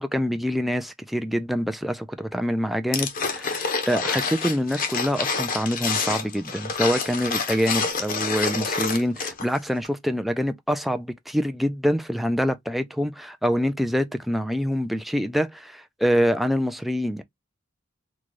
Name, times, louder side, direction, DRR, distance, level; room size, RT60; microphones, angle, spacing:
voice 1, 0.0-17.2, equal, ahead, 0.3 m, -25 dB
sound 1, 2.9-9.6 9.8-9.9, left 5 dB, 45° left, 0.7 m, -27 dB
3.7 x 2.3 x 3.1 m
head